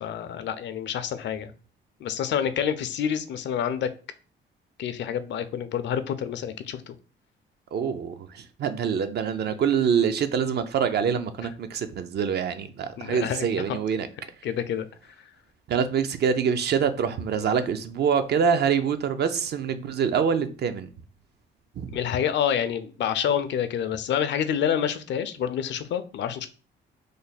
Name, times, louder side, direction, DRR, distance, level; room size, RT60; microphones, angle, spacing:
voice 1, 0.0-1.5 2.0-3.9 4.8-6.9 13.0-13.8 14.4-14.9 21.9-26.5, left 8 dB, 65° left, 0.5 m, -28 dB
voice 2, 7.7-14.1 15.7-20.9 21.8-21.9, right 7 dB, 55° right, 0.5 m, -25 dB
3.2 x 2.1 x 4.0 m
cardioid pair, 90°, 20 cm